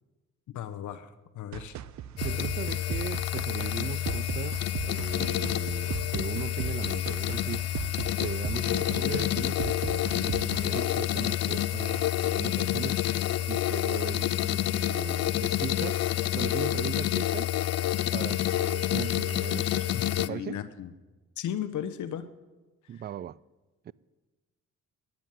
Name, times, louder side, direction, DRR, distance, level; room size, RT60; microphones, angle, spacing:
voice 1, 0.5-1.8 8.7-8.9 19.9-20.9 21.4-22.3 22.9-23.0, left 10 dB, 75° left, 1.0 m, -36 dB
sound 1, 1.5-10.8, right 10 dB, 70° right, 0.7 m, -38 dB
voice 2, 2.1-7.7 8.2-13.0 13.5-16.1 16.3-17.5 18.1-20.6 22.9-23.4 23.8-23.9, right 10 dB, 35° right, 0.4 m, -38 dB
sound 2, 2.2-20.3, left 13 dB, 55° left, 0.5 m, -28 dB
sound 3, 6.5-8.7 9.3-9.4 9.8-11.7 12.0-20.0, left 2 dB, 20° left, 6.5 m, -57 dB
13.0 x 10.5 x 9.2 m
cardioid pair, 90°, 30 cm